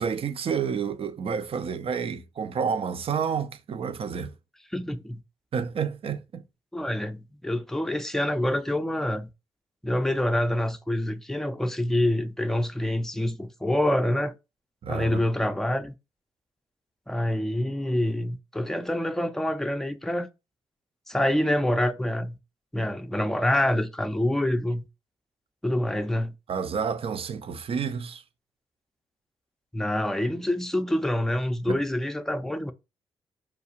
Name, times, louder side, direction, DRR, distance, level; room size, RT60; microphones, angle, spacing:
voice 1, 0.0-4.3 5.5-6.4 14.8-15.2 26.5-28.2 31.7-31.8, right 6 dB, 50° right, 0.5 m, -30 dB
voice 2, 4.7-5.2 6.7-9.3 9.8-14.3 14.9-15.9 17.1-20.3 21.1-22.4 22.7-24.8 25.6-26.3 29.7-32.7, left 1 dB, 5° left, 0.5 m, -26 dB
4.7 x 2.3 x 2.8 m
supercardioid pair, 50°, 12 cm